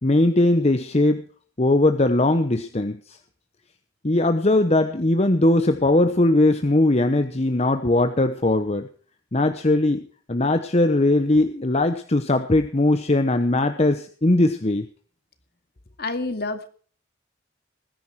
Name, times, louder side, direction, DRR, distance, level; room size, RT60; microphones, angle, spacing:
voice 1, 0.0-1.2 1.6-3.2 4.0-8.9 9.3-10.0 10.3-14.9, left 2 dB, 35° left, 8 dB, 0.9 m, -20 dB
voice 2, 16.0-16.7, left 3 dB, 55° left, 8 dB, 2.2 m, -28 dB
20.0 x 10.5 x 4.8 m, 0.43 s
head